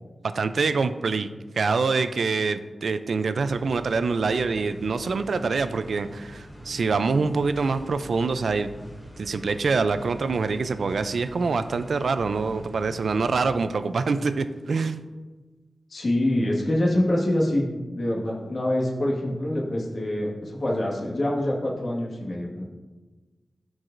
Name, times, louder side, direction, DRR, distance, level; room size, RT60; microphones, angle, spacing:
voice 1, 0.3-1.3 1.5-8.7 9.2-15.0, right 4 dB, 80° right, 11 dB, 0.4 m, -25 dB
sound 1, 3.3-13.5, equal, 20° left, 1.9 m, -43 dB
voice 2, 15.9-17.6 17.9-22.7, left 1 dB, 55° left, -4 dB, 1.6 m, -25 dB
13.5 x 4.7 x 2.6 m, 1.3 s
wide cardioid pair, 125°, 0 cm